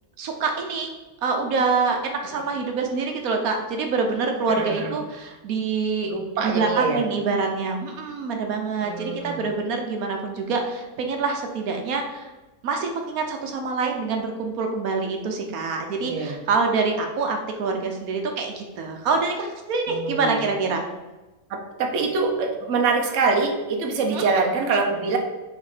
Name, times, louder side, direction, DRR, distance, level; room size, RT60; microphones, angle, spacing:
voice 1, 0.2-0.9 1.2-6.1 6.4-12.3 12.6-20.9 24.1-24.3, right 4 dB, 80° right, 3 dB, 1.2 m, -26 dB
voice 2, 4.5-4.9 6.1-7.0 8.8-9.4 16.0-16.4 19.9-20.5 21.5-25.2, right 4 dB, 60° right, 3 dB, 1.1 m, -24 dB
6.3 x 3.7 x 4.9 m, 1.1 s
omnidirectional pair, 1.5 m